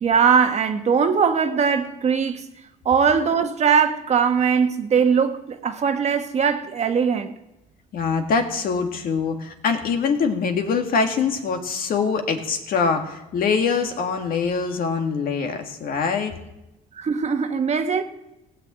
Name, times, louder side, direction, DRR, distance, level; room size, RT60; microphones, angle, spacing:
voice 1, 0.0-2.4 2.8-7.3 17.0-18.0, right 6 dB, 40° right, 1.2 m, -20 dB
voice 2, 7.9-16.3, left 5 dB, 60° left, 1.9 m, -23 dB
16.5 x 6.4 x 8.7 m
cardioid pair, 110°, 17 cm